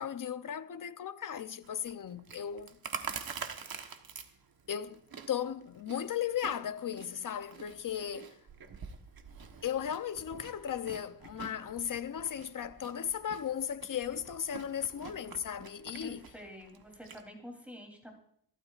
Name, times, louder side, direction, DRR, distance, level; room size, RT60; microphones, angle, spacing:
voice 1, 0.0-2.7 4.7-5.0 5.3-8.4 9.6-16.2, left 9 dB, 60° left, 0.7 m, -36 dB
Chewing mastication, 1.6-17.2, right 6 dB, 70° right, 1.2 m, -47 dB
voice 2, 16.0-18.1, equal, 5° right, 3.1 m, -48 dB
27.0 x 12.5 x 2.5 m
wide cardioid pair, 155°, 37 cm